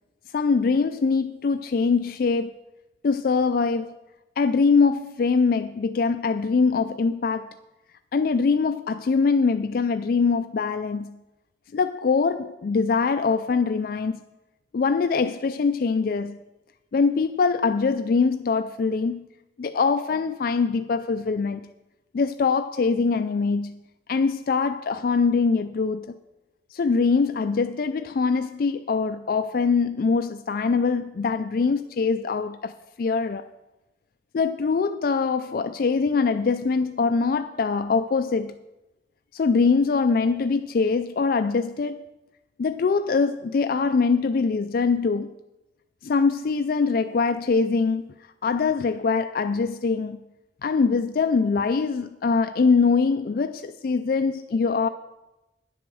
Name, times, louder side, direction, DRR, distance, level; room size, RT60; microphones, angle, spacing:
voice 1, 0.3-2.5 3.0-3.9 4.4-7.5 8.1-11.2 11.7-14.2 14.7-16.4 16.9-19.3 19.6-21.7 22.1-23.8 24.1-26.1 26.7-33.4 34.3-38.5 39.3-42.0 42.6-45.3 46.0-48.1 48.4-50.2 50.6-54.9, left 4 dB, 55° left, 0.4 m, -23 dB
10.5 x 7.8 x 6.2 m
head